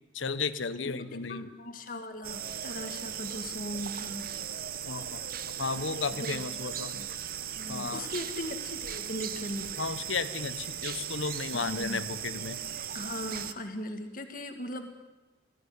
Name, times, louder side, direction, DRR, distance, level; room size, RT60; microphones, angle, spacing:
voice 1, 0.1-1.5 4.8-5.2 5.6-7.0 7.7-8.1 9.8-12.6, left 4 dB, 80° left, 14 dB, 1.0 m, -34 dB
voice 2, 0.8-4.3 5.9-7.1 7.5-9.7 11.5-12.0 12.9-14.9, left 1 dB, 45° left, 6 dB, 2.1 m, -39 dB
sound 1, 2.2-13.5, right 9 dB, 50° right, 0.9 m, -38 dB
19.0 x 14.5 x 9.7 m, 1.2 s
head